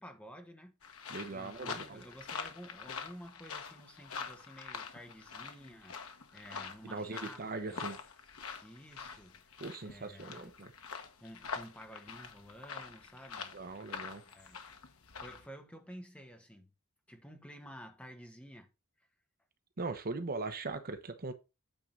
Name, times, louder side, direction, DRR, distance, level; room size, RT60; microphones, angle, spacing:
voice 1, 0.0-6.0 6.3-7.8 8.6-10.5 11.2-13.5 14.2-14.8 15.2-16.7 17.1-18.7 19.0-19.1, equal, 5° left, 1.2 m, -52 dB
sound 1, 0.8-15.5, left 5 dB, 70° left, 1.2 m, -45 dB
voice 2, 1.1-2.0 6.8-8.0 9.6-10.7 13.5-14.2 19.8-21.3, right 3 dB, 45° right, 0.8 m, -40 dB
8.9 x 3.7 x 5.4 m
head